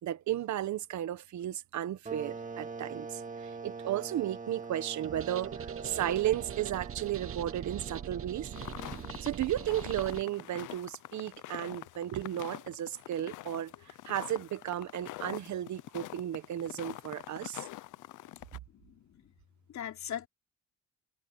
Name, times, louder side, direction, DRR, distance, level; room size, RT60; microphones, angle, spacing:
voice 1, 0.0-8.5 9.2-17.7, right 12 dB, 70° right, 1.3 m, -34 dB
sound 1, 2.1-10.4, right 4 dB, 25° right, 2.1 m, -44 dB
sound 2, 5.0-10.2, right 9 dB, 45° right, 1.0 m, -42 dB
sound 3, 8.5-18.6, left 16 dB, 85° left, 0.8 m, -45 dB
voice 2, 18.7-19.3 19.7-20.3, left 10 dB, 65° left, 3.9 m, -40 dB
cardioid pair, 90°, 30 cm